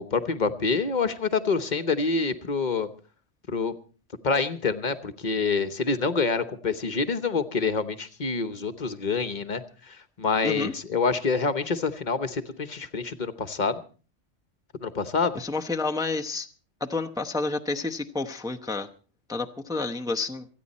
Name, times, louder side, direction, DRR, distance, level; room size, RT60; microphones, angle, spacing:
voice 1, 0.0-2.9 3.5-3.8 4.2-13.8 14.8-15.4, left 4 dB, 40° left, 10 dB, 1.1 m, -27 dB
voice 2, 10.4-10.7 15.3-16.5 16.8-18.9 19.3-20.5, left 3 dB, 5° right, 4 dB, 0.8 m, -29 dB
27.0 x 9.7 x 4.2 m, 0.39 s
omnidirectional pair, 1.2 m